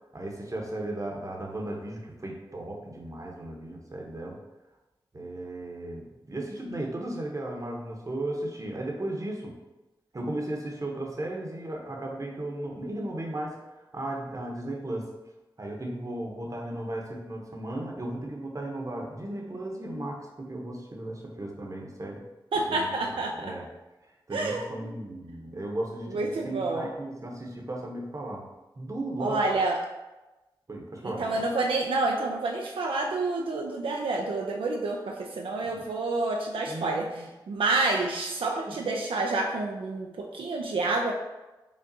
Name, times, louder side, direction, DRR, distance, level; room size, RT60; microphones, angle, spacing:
voice 1, 0.1-4.4 5.1-9.6 10.1-15.1 15.6-22.2 22.7-22.9 23.3-23.7 24.3-28.5 28.8-29.4 30.7-31.5 35.6-35.8 36.7-37.3 38.7-39.0, right 1 dB, 40° right, 0 dB, 0.8 m, -35 dB
voice 2, 22.5-23.5 24.3-24.9 26.1-26.9 29.2-29.8 31.2-37.1 37.5-41.1, right 3 dB, 80° right, 0 dB, 0.3 m, -28 dB
5.1 x 2.3 x 2.6 m, 1.1 s
cardioid pair, 45°, 9 cm